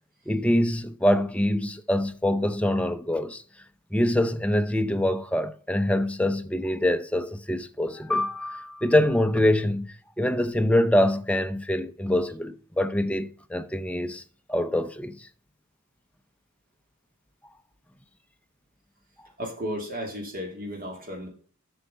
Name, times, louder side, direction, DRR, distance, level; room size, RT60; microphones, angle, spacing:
voice 1, 0.3-3.4 3.9-14.2 14.5-15.3, left 1 dB, 5° left, 0.5 m, -25 dB
voice 2, 19.4-21.3, equal, 40° right, 2.9 m, -34 dB
7.8 x 6.4 x 5.5 m
head